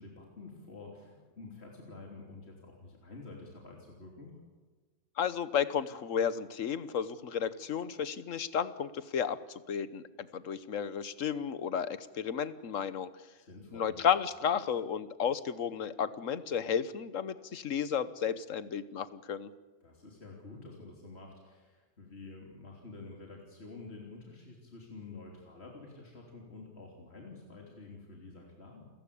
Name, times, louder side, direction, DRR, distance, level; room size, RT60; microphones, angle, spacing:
voice 1, 0.0-4.4 13.4-14.0 19.8-28.9, left 3 dB, 55° left, -1 dB, 3.6 m, -49 dB
voice 2, 5.2-13.1 13.7-19.5, left 8 dB, 80° left, 15 dB, 1.4 m, -33 dB
29.0 x 15.5 x 8.6 m, 1.3 s
omnidirectional pair, 1.3 m